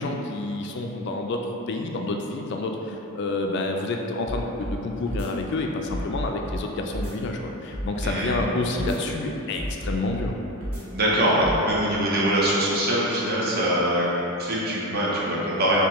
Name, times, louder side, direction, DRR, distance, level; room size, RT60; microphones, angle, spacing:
voice 1, 0.0-1.4 1.7-10.4, left 2 dB, 55° left, 2 dB, 0.3 m, -29 dB
sound 1, 4.3-4.8 5.1-5.3 5.9-6.6 6.9-7.1 7.7-8.5 8.8-9.0 9.6-10.3 10.6-10.8 11.4-11.6, equal, 80° right, 1.3 m, -31 dB
voice 2, 8.0-8.5 10.9-14.0 14.4-15.8, right 1 dB, 45° right, -6 dB, 0.8 m, -23 dB
6.4 x 2.3 x 3.0 m, 2.9 s
head